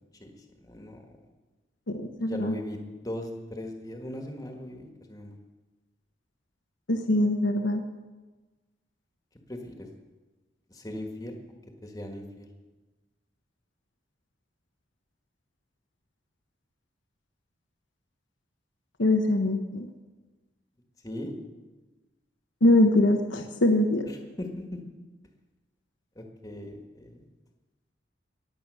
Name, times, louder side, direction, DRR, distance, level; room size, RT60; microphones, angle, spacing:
voice 1, 0.2-1.0 2.2-5.4 9.5-9.9 10.7-11.3 11.8-12.5 21.0-21.3 24.4-24.8 26.1-27.3, left 1 dB, 20° left, 3 dB, 1.7 m, -39 dB
voice 2, 1.9-2.5 6.9-7.8 19.0-19.9 22.6-24.1, left 1 dB, 75° left, 5 dB, 1.1 m, -23 dB
22.0 x 8.0 x 6.4 m, 1.2 s
head